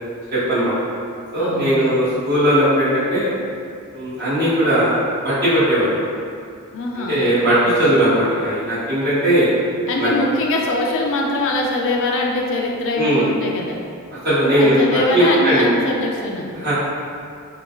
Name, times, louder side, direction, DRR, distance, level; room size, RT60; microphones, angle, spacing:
voice 1, 0.3-0.7 1.3-3.3 3.9-6.0 6.9-9.5 10.0-10.1 12.9-13.2 14.2-15.7 16.6-16.7, equal, 45° right, -13 dB, 1.4 m, -18 dB
voice 2, 1.4-2.0 6.7-7.2 9.9-13.8 14.6-16.5, left 2 dB, 60° left, -1 dB, 0.4 m, -22 dB
3.8 x 2.3 x 2.2 m, 2.4 s
head